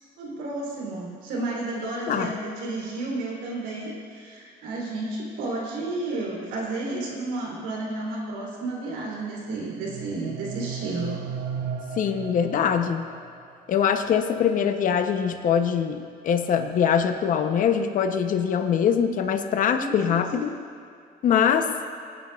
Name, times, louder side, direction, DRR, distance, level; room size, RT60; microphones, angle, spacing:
voice 1, 0.2-11.3 19.7-20.5, right 2 dB, 85° right, -3 dB, 3.2 m, -32 dB
sound 1, 9.5-13.5, right 6 dB, 55° right, 0.9 m, -36 dB
voice 2, 12.0-13.1 13.7-20.5 21.2-21.7, left 7 dB, 50° left, 7 dB, 0.7 m, -23 dB
22.0 x 9.1 x 2.4 m, 2.3 s
cardioid pair, 110°, 17 cm